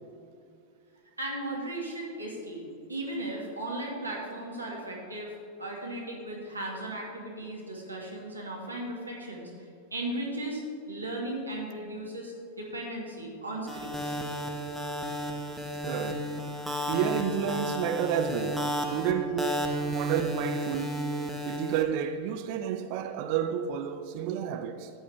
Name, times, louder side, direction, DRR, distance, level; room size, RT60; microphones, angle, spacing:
voice 1, 1.2-5.3 5.6-9.5 9.9-10.6 10.9-14.2, right 1 dB, 80° right, 2.2 m, -36 dB
sound 1, 13.7-21.8, equal, 5° right, 1.2 m, -33 dB
voice 2, 15.8-16.3 16.9-21.1 21.4-24.9, right 8 dB, 45° right, 0.5 m, -31 dB
14.0 x 8.7 x 3.4 m
figure-of-eight pair, 90°, 0 cm